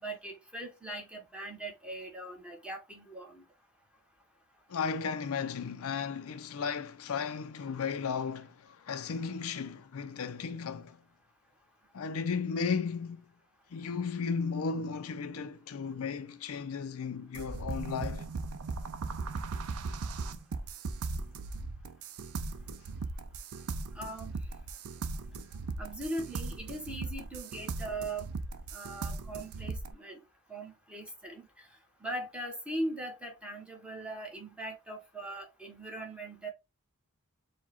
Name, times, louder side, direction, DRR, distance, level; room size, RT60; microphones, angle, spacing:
voice 1, 0.0-3.4 23.9-24.3 25.8-28.3 28.7-30.2 30.5-31.7 32.0-36.5, right 1 dB, 5° right, 1.1 m, -40 dB
voice 2, 4.7-11.0 11.9-13.2 13.7-18.3, left 5 dB, 75° left, 0.5 m, -35 dB
sound 1, 17.3-29.9, right 3 dB, 80° right, 0.5 m, -38 dB
4.7 x 2.2 x 4.1 m
head